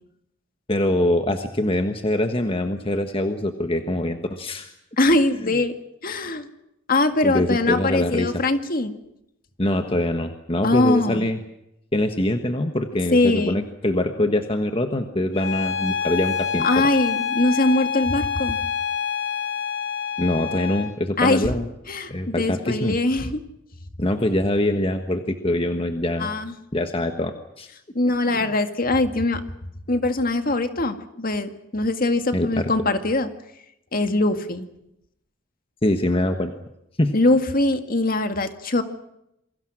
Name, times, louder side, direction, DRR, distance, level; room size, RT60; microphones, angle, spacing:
voice 1, 0.7-4.7 7.2-8.3 9.6-11.4 11.9-16.8 20.2-21.7 22.1-23.0 24.0-26.3 26.7-27.7 28.3-28.5 32.3-32.7 35.8-36.5 37.0-37.1, left 1 dB, 25° left, 6 dB, 1.4 m, -24 dB
voice 2, 5.0-5.7 6.0-6.5 6.9-8.9 10.6-11.3 13.1-13.6 16.6-18.6 21.2-21.5 21.9-23.4 26.2-26.5 27.9-29.4 29.9-33.3 33.9-34.7 37.1-38.8, left 2 dB, 45° left, 8 dB, 2.0 m, -22 dB
Bowed string instrument, 15.3-21.0, left 7 dB, 75° left, 3.8 m, -27 dB
28.0 x 23.0 x 6.3 m, 0.81 s
head